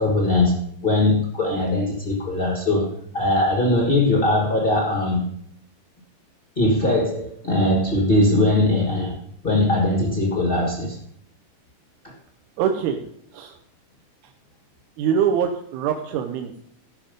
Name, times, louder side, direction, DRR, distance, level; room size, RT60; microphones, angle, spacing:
voice 1, 0.0-5.3 6.6-9.1 9.4-11.0, left 2 dB, 40° left, 0 dB, 0.7 m, -20 dB
voice 2, 12.6-13.0 13.3-13.6 15.0-16.6, right 8 dB, 75° right, 4 dB, 2.0 m, -23 dB
14.5 x 5.9 x 5.1 m, 0.68 s
omnidirectional pair, 3.5 m